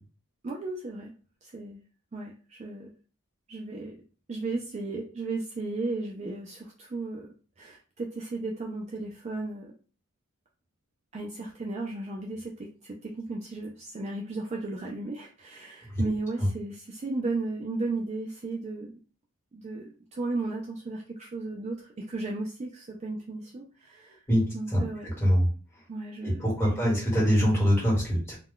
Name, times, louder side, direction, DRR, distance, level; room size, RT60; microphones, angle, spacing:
voice 1, 0.4-1.1 1.4-1.8 2.1-2.9 3.5-3.9 4.3-7.3 7.6-9.7 11.1-18.9 19.5-24.2 24.5-25.1 25.9-26.9, right 2 dB, 30° right, -1 dB, 0.3 m, -35 dB
voice 2, 26.2-28.3, equal, 10° left, -5 dB, 1.3 m, -23 dB
2.2 x 2.2 x 3.6 m, 0.38 s
head